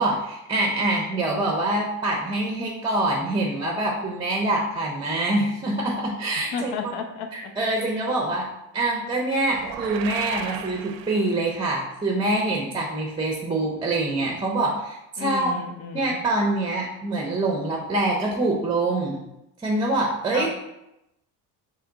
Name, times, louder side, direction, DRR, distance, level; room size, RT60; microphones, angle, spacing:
voice 1, 0.0-6.7 7.3-8.5 8.7-15.5 15.9-19.2 19.6-20.5, right 2 dB, 10° right, -1 dB, 0.5 m, -25 dB
voice 2, 6.4-7.5 15.2-16.2 20.3-20.5, left 5 dB, 85° left, 4 dB, 0.7 m, -33 dB
sound 1, 9.5-11.7, right 9 dB, 70° right, 0.5 m, -36 dB
3.4 x 3.3 x 3.8 m, 0.88 s
cardioid pair, 140°, 38 cm